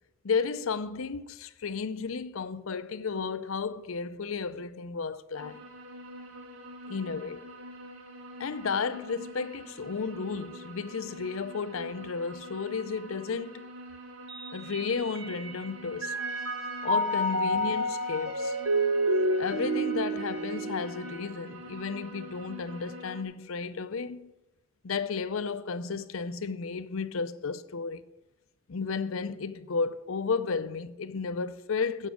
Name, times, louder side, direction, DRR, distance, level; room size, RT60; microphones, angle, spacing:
voice 1, 0.2-5.6 6.9-7.4 8.4-13.6 14.5-16.2 16.8-18.6 19.4-24.3 24.8-28.0 28.7-32.1, left 5 dB, 75° left, 0.6 m, -33 dB
sound 1, 5.3-23.2, equal, 85° right, 1.8 m, -46 dB
Mallet percussion, 14.3-15.7 16.0-21.4, right 1 dB, 60° right, 0.9 m, -29 dB
Trumpet, 16.1-21.4, right 2 dB, 20° right, 2.9 m, -48 dB
10.0 x 8.1 x 6.4 m
head